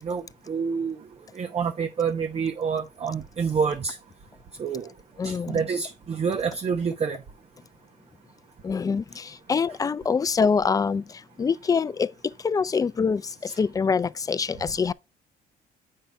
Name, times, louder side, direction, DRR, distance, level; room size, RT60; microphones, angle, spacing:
voice 1, 0.0-1.0 1.3-4.0 4.6-4.9 5.2-7.2 13.5-13.6, right 6 dB, 35° right, 0.9 m, -28 dB
voice 2, 5.2-5.6 8.6-12.1 12.4-14.9, left 5 dB, 20° left, 0.4 m, -25 dB
8.3 x 5.5 x 3.4 m
cardioid pair, 110°, 17 cm